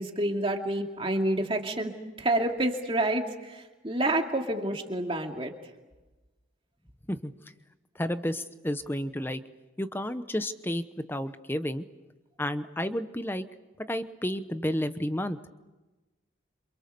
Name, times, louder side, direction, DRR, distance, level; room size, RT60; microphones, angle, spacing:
voice 1, 0.0-5.5, right 1 dB, 30° right, 3 dB, 2.5 m, -28 dB
voice 2, 8.0-9.4 9.8-11.8 12.4-13.4 13.9-15.4, left 1 dB, 10° left, 11 dB, 0.9 m, -31 dB
28.0 x 27.5 x 6.8 m, 1.1 s
head